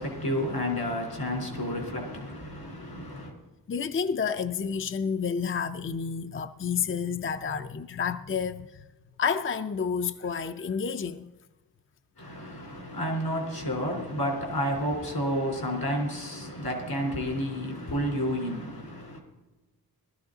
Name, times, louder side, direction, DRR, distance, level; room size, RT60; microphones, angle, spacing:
voice 1, 0.0-3.3 12.2-19.2, equal, 80° left, 3.8 m, -31 dB
voice 2, 3.7-8.8 9.2-11.3, left 6 dB, 35° left, 0.4 m, -30 dB
17.5 x 13.0 x 3.9 m
wide cardioid pair, 65°, 37 cm